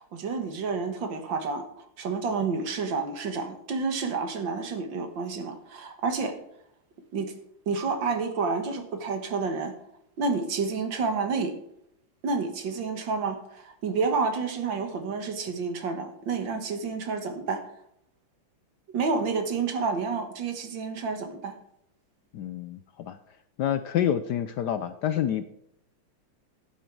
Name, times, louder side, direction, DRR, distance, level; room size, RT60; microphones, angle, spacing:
voice 1, 0.0-6.4 7.1-7.3 7.7-9.7 10.2-11.6 12.2-17.6 18.9-21.6, right 4 dB, 65° right, 7 dB, 2.1 m, -29 dB
voice 2, 22.3-23.2 23.6-25.4, left 10 dB, 70° left, 11 dB, 1.0 m, -28 dB
11.5 x 9.2 x 4.6 m, 0.75 s
omnidirectional pair, 2.3 m